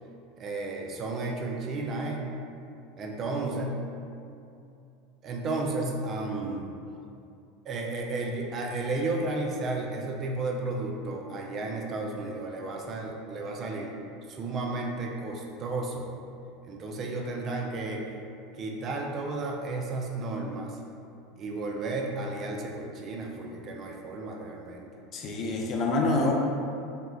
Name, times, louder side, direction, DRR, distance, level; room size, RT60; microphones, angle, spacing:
voice 1, 0.4-2.3 3.0-3.7 5.2-6.7 7.7-13.9 14.3-16.1 16.6-18.0 18.5-20.8 21.4-24.9, right 2 dB, 40° right, 0 dB, 0.4 m, -33 dB
voice 2, 25.1-26.3, left 2 dB, 45° left, 0 dB, 0.4 m, -26 dB
3.7 x 2.1 x 2.2 m, 2.6 s
hypercardioid pair, 95°, 0 cm